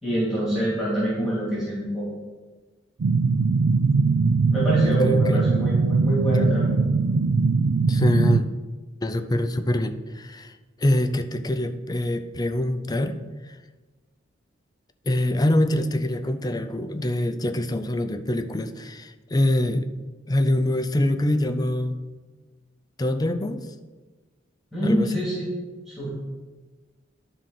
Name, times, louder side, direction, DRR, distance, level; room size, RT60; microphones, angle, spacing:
voice 1, 0.0-2.1 4.5-6.7 24.7-25.5 25.9-26.1, right 1 dB, ahead, -8 dB, 2.7 m, -25 dB
sound 1, 3.0-8.4, right 4 dB, 90° right, 0.4 m, -21 dB
voice 2, 4.8-5.4 7.9-8.4 9.0-10.5 10.8-13.2 13.5-13.6 15.0-19.9 20.3-22.0 23.0-23.7 24.8-25.1, left 1 dB, 20° left, 8 dB, 0.5 m, -24 dB
11.0 x 3.8 x 5.8 m, 1.3 s
head